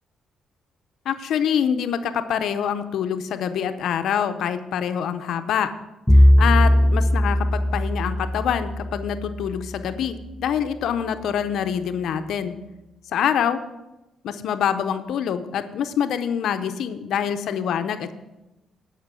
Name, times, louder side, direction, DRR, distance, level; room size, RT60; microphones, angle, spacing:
voice 1, 1.1-5.7 6.1-12.6 13.1-13.6 14.2-18.1, left 8 dB, 75° left, 9 dB, 0.6 m, -25 dB
Bowed string instrument, 6.1-10.3, equal, 10° left, 0.3 m, -19 dB
11.0 x 5.7 x 6.1 m, 1.0 s
cardioid pair, 90°, 0 cm